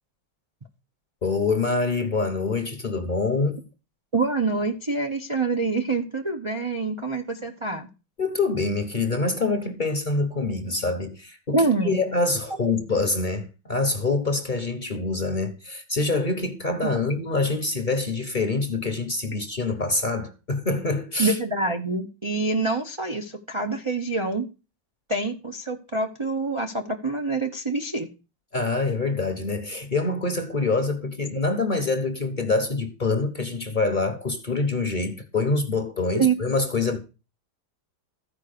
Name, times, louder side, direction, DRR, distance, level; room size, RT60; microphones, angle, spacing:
voice 1, 1.2-3.6 8.2-21.4 28.5-37.0, left 3 dB, 30° left, 1.0 m, -25 dB
voice 2, 4.1-7.9 11.5-11.9 21.2-24.5 25.1-28.1 36.1-36.4, right 3 dB, 30° right, 0.5 m, -26 dB
14.0 x 4.8 x 6.6 m
omnidirectional pair, 2.0 m